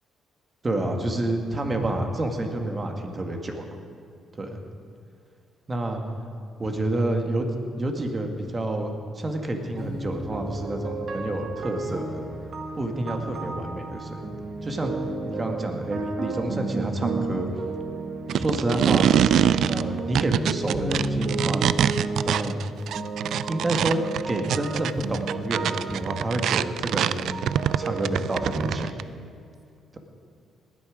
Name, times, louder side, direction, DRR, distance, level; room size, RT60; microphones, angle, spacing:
voice 1, 0.6-3.7 4.4-4.5 5.7-6.0 6.6-7.5 7.8-12.2 12.7-14.9 15.2-17.5 18.3-19.1 19.7-21.7 22.2-22.6 23.5-27.3 27.8-28.9, right 1 dB, 30° right, 4 dB, 1.8 m, -28 dB
sound 1, 9.8-28.7, right 3 dB, 55° right, 1.5 m, -32 dB
sound 2, 18.3-29.0, right 10 dB, 75° right, 0.3 m, -24 dB
19.0 x 10.5 x 5.1 m, 2.3 s
cardioid pair, 90°, 0 cm